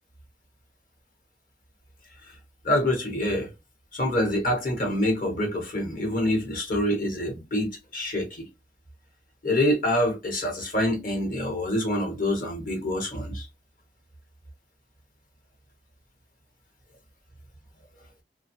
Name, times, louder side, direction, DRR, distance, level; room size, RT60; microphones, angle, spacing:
voice 1, 2.6-3.5 3.9-8.4 9.4-13.5, left 1 dB, 50° left, 1.1 m, -26 dB
2.7 x 2.2 x 2.9 m
head